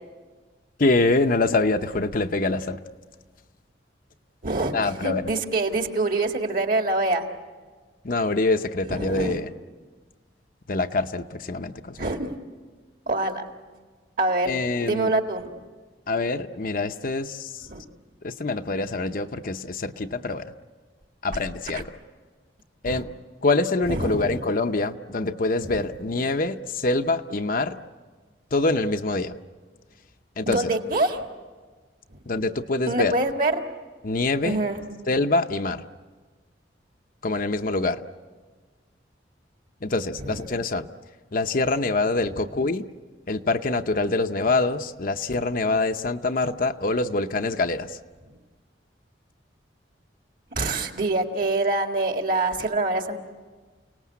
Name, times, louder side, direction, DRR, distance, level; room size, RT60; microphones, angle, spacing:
voice 1, 0.8-2.8 4.7-5.3 8.0-9.5 10.7-12.0 14.5-15.1 16.1-17.7 18.2-20.5 21.2-21.9 22.8-23.1 23.4-27.8 28.5-29.3 30.4-30.7 32.3-33.1 34.0-34.6 35.1-35.8 37.2-38.0 39.8-40.9 41.3-42.9 43.3-47.9, left 2 dB, 50° left, 7 dB, 0.8 m, -25 dB
voice 2, 4.4-7.2 8.9-9.4 12.0-12.3 13.1-13.4 14.2-15.5 17.7-17.8 21.7-21.8 22.9-23.0 23.9-24.4 25.6-25.8 30.5-31.2 32.9-33.6 34.4-34.8 40.2-40.4 50.6-53.2, right 2 dB, 50° right, 4 dB, 1.9 m, -25 dB
29.0 x 18.5 x 8.4 m, 1.4 s
head